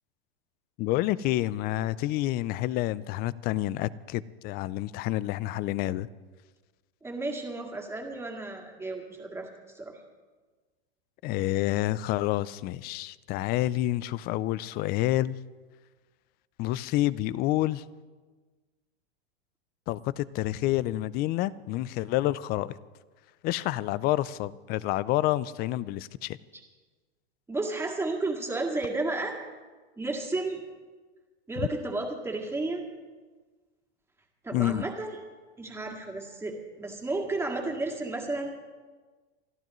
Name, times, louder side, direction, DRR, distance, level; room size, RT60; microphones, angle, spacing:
voice 1, 0.8-6.1 11.2-15.3 16.6-17.8 19.9-22.8 23.4-26.4 34.5-34.8, left 15 dB, 30° left, 19 dB, 0.4 m, -28 dB
voice 2, 7.0-10.0 26.5-26.6 27.5-29.4 30.0-30.6 31.5-32.9 34.4-35.2 35.6-38.6, right 2 dB, 10° right, 1 dB, 2.1 m, -32 dB
27.5 x 12.0 x 3.1 m, 1.3 s
supercardioid pair, 135°, 32 cm